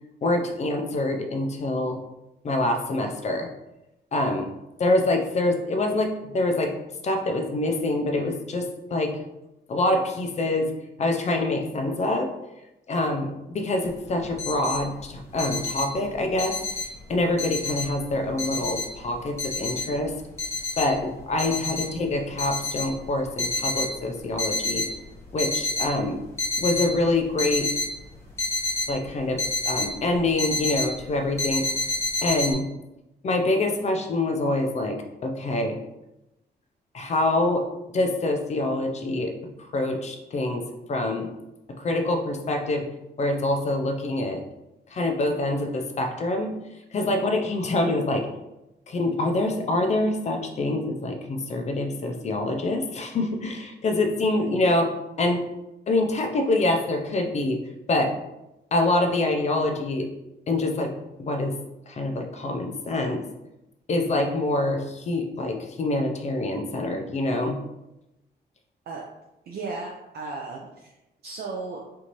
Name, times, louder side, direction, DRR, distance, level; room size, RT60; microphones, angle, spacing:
voice 1, 0.2-2.0 2.4-3.5 4.1-4.5 4.8-6.7 7.0-9.2 9.7-10.7 11.0-12.3 12.9-16.6 17.1-20.1 20.8-24.9 25.3-26.2 26.6-27.7 28.9-31.7 32.2-32.7 33.2-35.8 36.9-37.6 37.9-39.3 39.7-41.3 41.7-42.9 43.2-44.4 44.9-46.6 46.9-48.3 48.9-54.9 55.2-55.4 55.9-57.6 57.9-58.1 58.7-60.1 60.5-60.9 61.2-61.5 61.9-63.2 63.9-67.6, left 2 dB, 40° left, 4 dB, 0.5 m, -25 dB
sound 1, 13.9-14.0 14.2-14.8 15.1-17.0 17.4-18.1 18.4-20.1 20.4-20.9 21.4-21.9 22.3-23.9 24.3-24.9 25.3-25.9 26.2-26.9 27.4-29.9 30.1-31.0 31.4-32.5, left 2 dB, 15° left, 1.0 m, -28 dB
voice 2, 69.5-70.9 71.2-71.8, right 3 dB, 60° right, -2 dB, 0.5 m, -35 dB
4.4 x 2.6 x 3.0 m, 0.93 s
wide cardioid pair, 170°, 18 cm